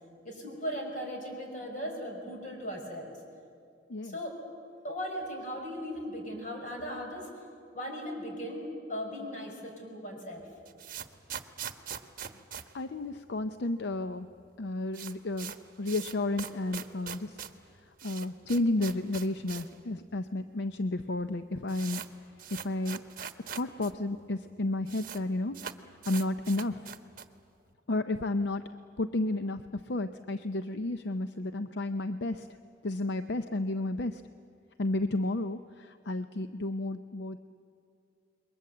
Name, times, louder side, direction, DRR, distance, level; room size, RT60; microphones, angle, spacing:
voice 1, 0.2-3.1 4.0-4.4 4.8-7.3 7.7-10.5, equal, 45° left, 1 dB, 5.4 m, -38 dB
sound 1, 10.4-13.6 13.9-14.0 14.2-14.3 14.6-19.8 20.1-20.2 20.9-21.0 21.2-23.9 24.2-24.3 24.5-25.2 25.5-27.4, right 8 dB, 50° right, 1.1 m, -42 dB
voice 2, 12.7-14.3 14.6-17.4 18.0-22.0 22.5-23.1 23.5-25.6 26.1-26.9 27.9-28.6 29.0-32.5 32.8-34.2 34.8-37.4, left 2 dB, 65° left, 10 dB, 0.6 m, -32 dB
28.5 x 22.0 x 7.8 m, 2.5 s
head